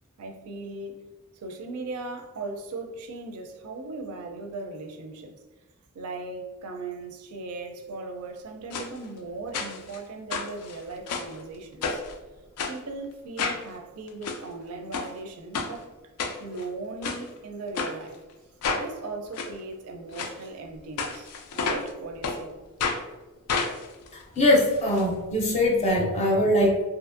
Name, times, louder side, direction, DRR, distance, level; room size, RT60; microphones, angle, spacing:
voice 1, 0.2-1.0 1.3-5.4 5.9-12.0 12.7-15.9 16.4-18.2 18.7-22.5, right 3 dB, 70° right, 0.4 m, -38 dB
sound 1, 8.7-8.9 9.5-10.0 10.3-11.3 11.8-12.1 12.6-12.8 13.4-13.6 14.1-14.4 14.9-15.1 15.5-15.7 16.2-16.6 17.0-17.2 17.7-17.9 18.6-18.9 19.3-19.5 20.1-20.3 21.0-21.9 22.2-22.4 22.8-23.0 23.5-25.0 25.3-25.4 25.6-25.7, left 4 dB, 85° left, 0.4 m, -30 dB
voice 2, 24.1-26.8, left 1 dB, 30° left, 0.5 m, -22 dB
2.7 x 2.5 x 2.5 m
head